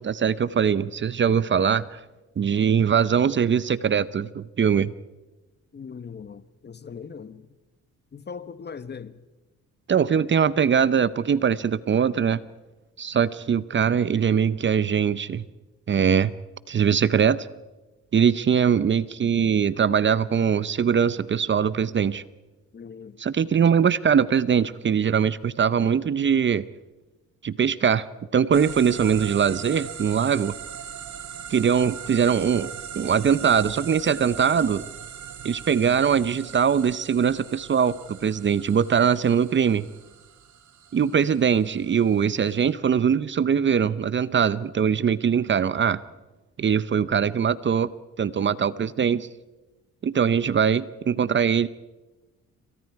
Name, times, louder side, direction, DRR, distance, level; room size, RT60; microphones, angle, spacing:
voice 1, 0.0-2.0 2.4-4.9 9.9-12.4 13.0-15.4 15.9-16.3 16.7-17.5 18.1-22.2 23.2-26.6 27.4-28.1 28.3-30.5 31.5-34.8 35.4-39.8 40.9-46.0 46.6-47.9 48.2-49.3 50.0-51.7, right 7 dB, 40° right, 0.8 m, -22 dB
voice 2, 5.7-7.5 8.1-9.2 22.7-23.2, left 6 dB, 35° left, 1.1 m, -39 dB
sound 1, 28.5-42.7, right 8 dB, 70° right, 2.7 m, -40 dB
28.0 x 25.5 x 4.7 m
cardioid pair, 90°, 30 cm